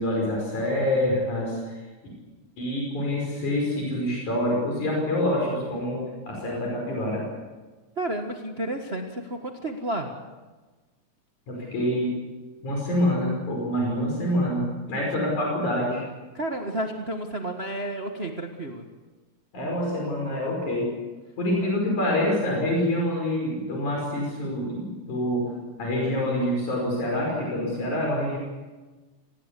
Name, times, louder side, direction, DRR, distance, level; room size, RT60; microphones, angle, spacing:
voice 1, 0.0-1.8 2.6-7.2 11.5-12.1 12.6-16.0 19.5-20.9 21.4-25.5 25.8-28.4, left 1 dB, 80° left, -2 dB, 7.0 m, -26 dB
voice 2, 8.0-10.1 16.3-18.9, right 1 dB, 30° right, 3 dB, 1.3 m, -31 dB
27.5 x 19.5 x 8.4 m, 1.3 s
omnidirectional pair, 3.3 m